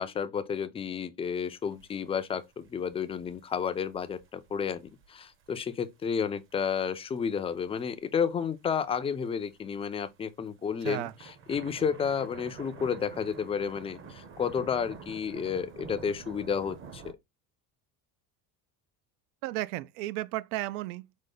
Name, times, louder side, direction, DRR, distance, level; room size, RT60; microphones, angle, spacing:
voice 1, 0.0-17.0, left 7 dB, 15° left, 0.3 m, -31 dB
sound 1, 1.4-1.5 1.8-5.8 6.3-6.8 7.1-8.2 8.6-10.1 10.6-17.1, right 5 dB, 30° right, 0.7 m, -48 dB
voice 2, 19.4-21.2, right 16 dB, 80° right, 0.5 m, -34 dB
5.0 x 2.2 x 3.8 m
supercardioid pair, 125°, 43 cm